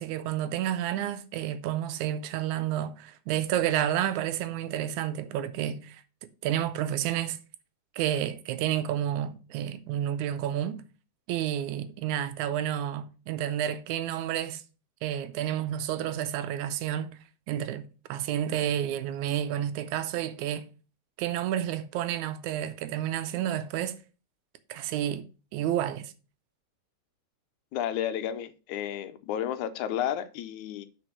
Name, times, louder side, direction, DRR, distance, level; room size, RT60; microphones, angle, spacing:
voice 1, 0.0-6.0 6.4-7.4 8.0-10.8 11.3-14.6 15.0-17.2 17.5-20.7 21.2-24.0 24.7-25.2 25.5-26.1, right 11 dB, 90° right, 2.1 m, -30 dB
voice 2, 27.7-30.9, left 10 dB, 85° left, 2.1 m, -32 dB
6.1 x 5.2 x 6.0 m
omnidirectional pair, 3.4 m